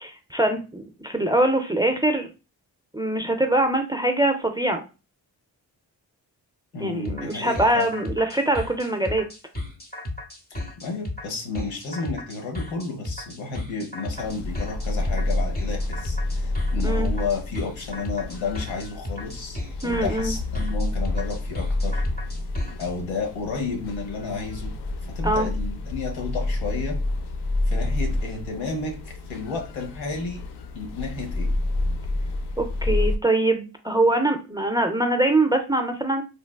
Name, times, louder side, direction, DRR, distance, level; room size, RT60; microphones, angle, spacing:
voice 1, 0.0-2.3 2.9-4.8 6.8-9.2 16.8-17.1 19.8-20.4 25.2-25.5 32.6-36.2, right 1 dB, 10° right, 5 dB, 0.4 m, -23 dB
voice 2, 6.7-7.9 10.5-22.1 22.8-24.7 25.1-27.0 27.7-30.4 30.7-31.5, left 4 dB, 85° left, 2 dB, 1.0 m, -32 dB
sound 1, 7.0-22.9, left 2 dB, 20° left, 0.9 m, -34 dB
sound 2, 14.1-33.2, left 2 dB, 60° left, 0.6 m, -28 dB
3.3 x 2.1 x 2.2 m, 0.31 s
supercardioid pair, 45°, 46 cm